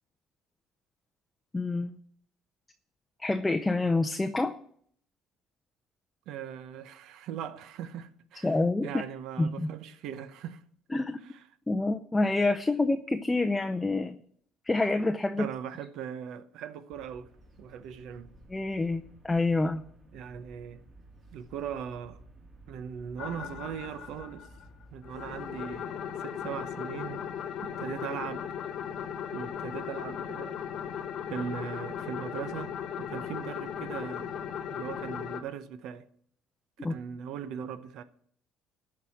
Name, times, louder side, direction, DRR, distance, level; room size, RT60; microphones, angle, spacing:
voice 1, 1.5-1.9 3.2-4.5 8.4-9.0 9.4-9.7 10.9-11.2 11.7-14.2 14.7-15.5 18.5-19.8 36.8-37.0, left 2 dB, 15° left, 0.5 m, -27 dB
voice 2, 6.3-10.6 11.2-11.4 15.4-17.3 17.6-18.3 20.1-20.8 21.3-22.2 22.7-24.5 24.9-27.2 27.6-28.5 29.3-30.6 31.3-34.4 34.7-36.1 36.8-38.0, right 8 dB, 70° right, 0.8 m, -39 dB
sound 1, 16.9-25.8, right 1 dB, 35° right, 3.3 m, -54 dB
sound 2, 23.2-24.6 25.0-35.4, left 8 dB, 60° left, 1.1 m, -37 dB
13.0 x 4.8 x 8.4 m
cardioid pair, 115°, 0 cm